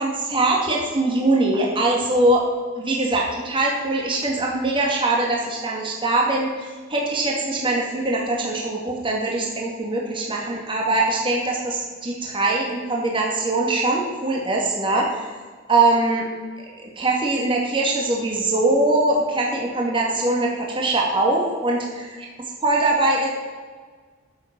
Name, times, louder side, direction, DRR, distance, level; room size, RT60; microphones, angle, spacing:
voice 1, 0.0-2.5 2.8-15.3 15.7-16.3 16.8-22.0 22.6-23.3, right 2 dB, 25° right, -2 dB, 2.4 m, -22 dB
13.5 x 7.7 x 6.1 m, 1.5 s
head